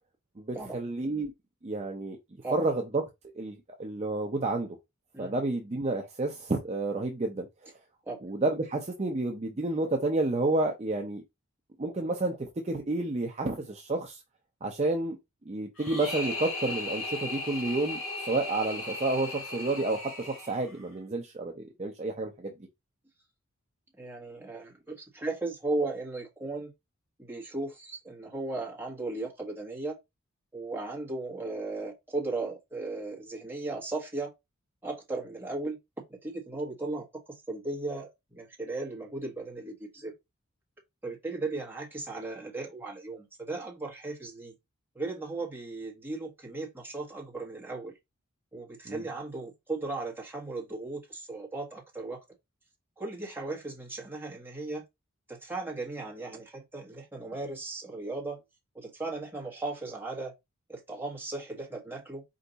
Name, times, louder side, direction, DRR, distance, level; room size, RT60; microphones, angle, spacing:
voice 1, 0.4-1.3 1.6-2.2 2.5-3.0 3.3-4.8 5.2-7.5 8.2-11.2 11.8-14.2 14.6-15.2 15.5-22.5 48.9-49.0, right 2 dB, 30° right, 0.5 m, -30 dB
sound 1, 15.8-20.9, left 2 dB, 65° left, 2.0 m, -37 dB
voice 2, 24.0-26.7 27.2-30.0 30.5-34.3 34.8-35.8 36.1-40.1 41.0-44.5 44.9-47.9 48.5-52.2 53.0-54.8 55.3-58.4 58.7-60.3 60.7-62.2, right 2 dB, 10° right, 1.2 m, -36 dB
4.5 x 2.6 x 3.9 m
head